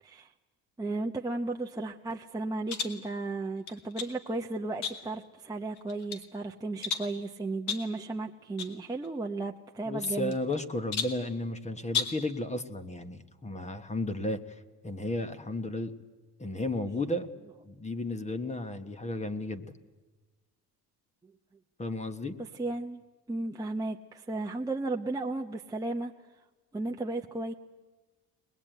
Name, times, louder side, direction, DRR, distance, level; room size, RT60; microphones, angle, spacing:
voice 1, 0.8-10.4 22.4-23.0 23.3-26.1 26.7-27.5, right 2 dB, 10° right, 1 dB, 0.7 m, -34 dB
sound 1, 2.7-3.0 3.7-4.2 4.8-5.3 5.8-6.3 6.8-7.2 7.7-8.0 8.6-8.8 9.0-9.1 10.0-10.6 10.9-11.3 11.9-12.3, left 7 dB, 75° left, 2.4 m, -34 dB
voice 2, 9.9-14.4 14.8-15.9 16.4-17.3 17.6-19.7 21.8-22.4, left 2 dB, 15° left, 10 dB, 1.2 m, -33 dB
22.5 x 20.5 x 9.1 m, 1.3 s
cardioid pair, 135°, 40 cm